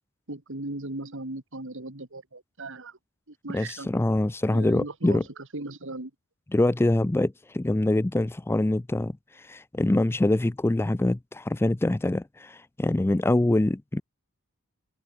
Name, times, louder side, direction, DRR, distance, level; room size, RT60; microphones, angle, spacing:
voice 1, 0.3-3.0 3.3-3.9 4.5-5.3 5.5-6.1, right 2 dB, 65° right, 2.6 m, -37 dB
voice 2, 3.5-5.2 6.5-14.0, left 1 dB, 10° left, 0.4 m, -24 dB
head